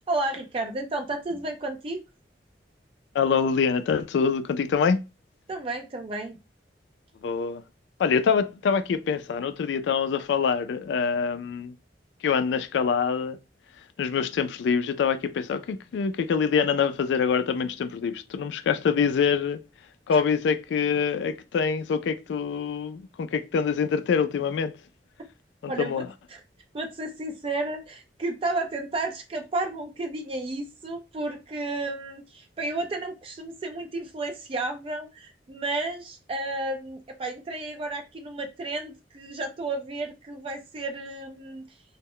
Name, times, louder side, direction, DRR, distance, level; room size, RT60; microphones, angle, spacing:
voice 1, 0.1-2.0 5.5-6.4 20.1-20.2 25.7-26.4 26.7-41.7, right 2 dB, 30° right, 0.4 m, -32 dB
voice 2, 3.1-5.0 7.2-7.6 8.0-11.7 12.2-13.4 14.0-19.6 20.1-24.7 25.6-26.1, left 6 dB, 85° left, 0.3 m, -25 dB
2.1 x 2.1 x 3.6 m
head